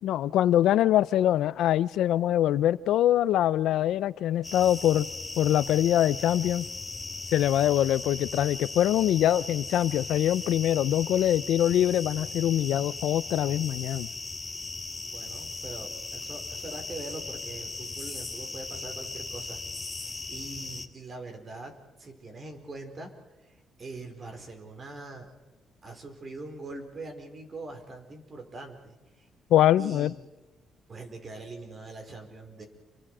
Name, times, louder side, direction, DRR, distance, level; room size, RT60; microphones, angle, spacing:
voice 1, 0.0-5.1 5.4-6.7 7.3-14.1 29.5-30.1, left 12 dB, 80° left, 18 dB, 0.6 m, -24 dB
sound 1, 4.4-20.9, left 3 dB, 20° left, 1.8 m, -38 dB
voice 2, 15.0-19.6 20.0-23.1 23.4-25.3 25.8-29.3 29.8-30.2 30.9-32.6, right 2 dB, 40° right, 5 dB, 5.0 m, -43 dB
29.5 x 24.0 x 5.0 m, 1.1 s
cardioid pair, 90°, 0 cm